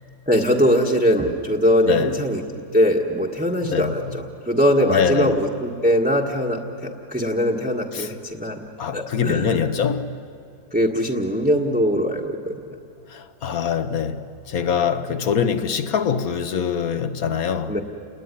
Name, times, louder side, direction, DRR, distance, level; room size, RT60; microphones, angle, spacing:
voice 1, 0.3-2.4 2.7-8.6 8.9-9.6 10.7-12.6 17.7-17.8, equal, 5° right, 1.5 m, -21 dB
voice 2, 1.8-2.2 3.7-3.9 4.9-5.3 7.9-8.1 8.8-10.2 13.1-17.7, left 7 dB, 60° left, 1.5 m, -23 dB
29.5 x 20.0 x 9.9 m
omnidirectional pair, 1.8 m